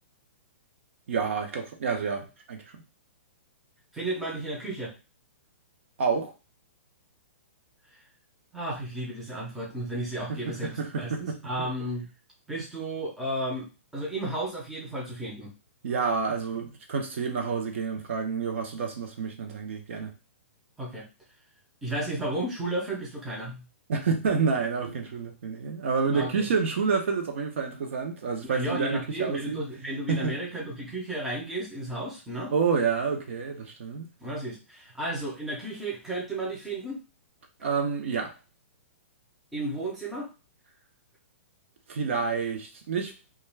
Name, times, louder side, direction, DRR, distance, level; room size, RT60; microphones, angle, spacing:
voice 1, 1.1-2.8 6.0-6.3 10.3-11.4 15.8-20.1 23.9-29.6 30.1-30.3 32.5-34.1 37.6-38.3 41.9-43.1, right 5 dB, 60° right, 0.7 m, -28 dB
voice 2, 3.9-4.9 8.5-12.1 12.5-13.7 13.9-15.5 20.8-21.1 21.8-23.6 26.1-26.5 28.4-32.5 34.2-37.0 39.5-40.3, right 1 dB, 5° right, 0.6 m, -33 dB
2.3 x 2.3 x 3.2 m
hypercardioid pair, 165°, 7 cm